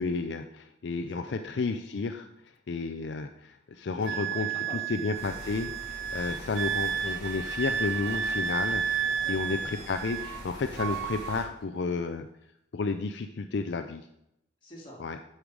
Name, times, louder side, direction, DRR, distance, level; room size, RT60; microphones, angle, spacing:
voice 1, 0.0-2.3 2.7-4.5 4.9-8.9 9.3-12.3 12.7-14.1 15.0-15.2, left 4 dB, 60° left, 7 dB, 0.4 m, -32 dB
voice 2, 1.0-1.5 3.9-4.9 9.0-9.6 14.6-15.0, equal, 25° left, -3 dB, 2.2 m, -47 dB
Wind instrument woodwind instrument, 4.1-10.5 10.8-11.4, right 7 dB, 75° right, 0.4 m, -32 dB
sound 1, 5.1-11.4, left 1 dB, 20° right, 3.3 m, -45 dB
sound 2, 8.1-9.3 10.7-11.8, right 2 dB, 50° right, 1.0 m, -50 dB
8.4 x 5.5 x 4.7 m, 0.80 s
head